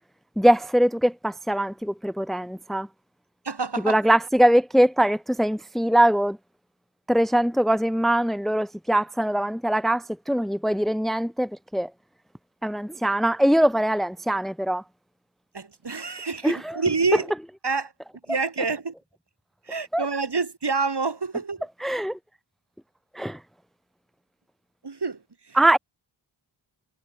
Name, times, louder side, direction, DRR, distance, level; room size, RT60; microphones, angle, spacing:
voice 1, 0.4-2.9 3.8-6.4 7.1-11.9 12.6-14.8 16.4-16.8 19.9-20.1 21.8-22.2 23.1-23.4 25.5-25.8, right 1 dB, ahead, 1.3 m, -22 dB
voice 2, 3.5-4.0 15.5-17.3 17.6-17.9 18.3-18.9 19.7-21.6 24.8-25.2 25.5-25.6, right 4 dB, 55° right, 5.2 m, -27 dB
wide cardioid pair, 65°, 49 cm